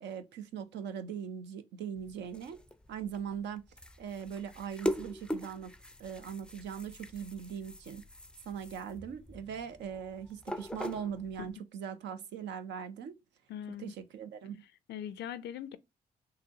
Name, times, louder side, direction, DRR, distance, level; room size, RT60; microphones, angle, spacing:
voice 1, 0.0-2.6 2.9-3.7 4.0-5.7 6.0-8.0 8.5-13.2 13.8-14.6, right 8 dB, 80° right, 0.5 m, -40 dB
sound 1, 2.0-11.5, equal, 5° left, 0.4 m, -42 dB
voice 2, 13.5-13.9 14.9-15.8, left 10 dB, 75° left, 0.4 m, -40 dB
3.9 x 2.7 x 2.7 m
supercardioid pair, 55°, 18 cm